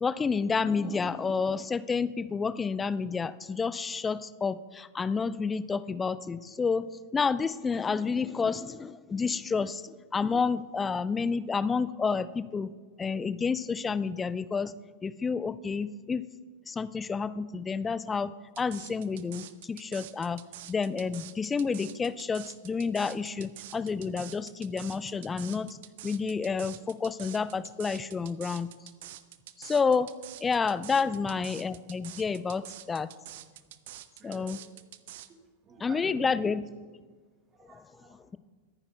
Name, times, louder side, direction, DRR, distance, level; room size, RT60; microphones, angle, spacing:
voice 1, 0.0-6.9 7.1-12.7 13.0-14.7 15.0-16.2 16.7-18.3 18.6-20.4 20.7-28.7 29.6-30.1 30.4-33.1 34.2-34.6 35.8-36.6, left 5 dB, 15° left, 17 dB, 0.4 m, -30 dB
sound 1, 18.6-35.3, right 13 dB, 55° right, 0.5 m, -46 dB
voice 2, 31.0-31.4 33.5-33.6 34.2-34.6 35.3-36.5 37.5-38.4, right 5 dB, 25° right, 5 dB, 1.4 m, -48 dB
24.5 x 9.7 x 2.3 m, 1.4 s
figure-of-eight pair, 90°, 0 cm